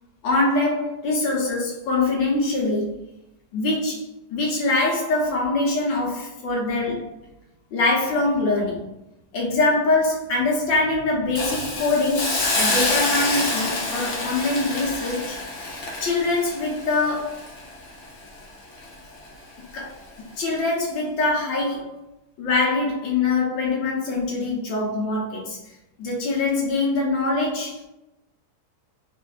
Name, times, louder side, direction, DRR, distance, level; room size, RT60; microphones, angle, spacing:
voice 1, 0.2-3.0 3.5-7.1 7.7-8.9 9.3-15.4 15.6-15.7 16.0-17.5 19.7-20.0 20.4-22.0 22.4-25.6 26.0-27.9, left 2 dB, 70° left, -2 dB, 1.5 m, -23 dB
Hiss, 11.4-18.4 18.8-18.9, left 2 dB, 85° left, 0.6 m, -27 dB
3.6 x 2.5 x 2.4 m, 0.87 s
omnidirectional pair, 2.3 m